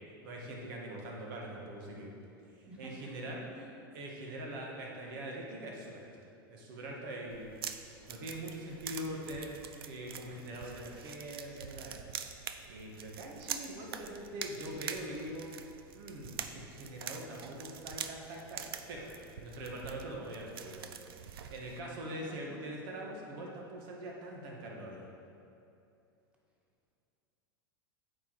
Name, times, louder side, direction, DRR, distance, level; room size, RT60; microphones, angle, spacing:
voice 1, 0.2-2.1 2.5-3.4 3.9-6.1 6.5-7.8 8.1-9.5 9.9-12.0 12.7-15.5 15.9-20.9 21.5-25.1, right 1 dB, 65° right, -1 dB, 1.7 m, -43 dB
voice 2, 2.7-3.1 3.4-3.8 22.3-22.6, right 1 dB, 10° right, -4 dB, 1.8 m, -51 dB
sound 1, 7.3-21.8, right 8 dB, 80° right, 0.5 m, -45 dB
8.4 x 4.7 x 4.8 m, 2.6 s
hypercardioid pair, 105°, 12 cm